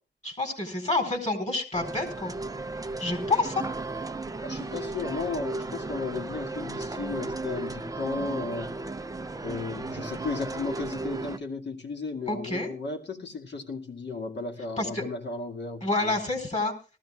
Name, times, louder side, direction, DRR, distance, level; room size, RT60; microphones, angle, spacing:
voice 1, 0.2-2.3 3.0-3.6 12.3-12.7 14.8-15.1 15.8-16.7, left 2 dB, 35° left, 5 dB, 4.1 m, -28 dB
sound 1, 1.7-11.4, right 3 dB, 20° right, 0.6 m, -35 dB
voice 2, 4.4-8.7 9.4-16.1, left 4 dB, 60° left, 2 dB, 2.2 m, -34 dB
19.5 x 14.0 x 2.4 m, 0.33 s
wide cardioid pair, 90°, 20 cm